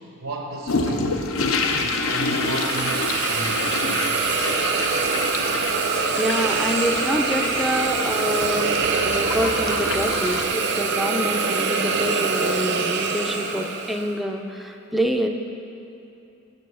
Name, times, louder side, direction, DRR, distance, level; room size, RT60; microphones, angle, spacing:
voice 1, 0.2-1.2 1.5-4.1 13.6-13.7, right 2 dB, 85° right, 0 dB, 0.9 m, -33 dB
sound 1, 0.7-10.5, left 3 dB, 80° left, 0.6 m, -28 dB
Hiss, 2.0-14.1, right 4 dB, 60° right, 0.5 m, -24 dB
sound 2, 3.8-10.5, left 5 dB, 50° left, 0.8 m, -45 dB
voice 2, 6.2-15.3, equal, ahead, 3 dB, 0.4 m, -26 dB
7.0 x 5.3 x 6.8 m, 2.8 s
head